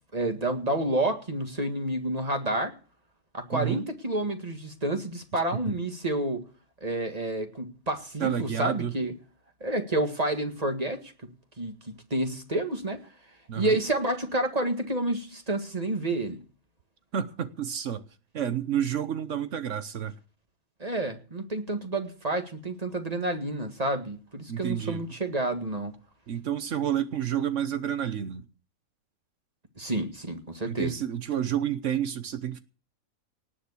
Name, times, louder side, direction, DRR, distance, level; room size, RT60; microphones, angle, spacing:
voice 1, 0.1-2.7 3.3-6.4 6.8-9.1 9.6-11.1 11.6-13.0 13.5-16.4 20.8-25.9 29.8-30.9, right 1 dB, 30° right, 2.0 m, -29 dB
voice 2, 3.5-3.9 5.7-5.8 8.2-8.9 13.5-13.8 17.1-18.0 18.3-20.1 24.5-25.0 26.3-28.4 30.7-32.6, right 9 dB, 65° right, 1.2 m, -30 dB
18.5 x 6.9 x 8.3 m
omnidirectional pair, 1.4 m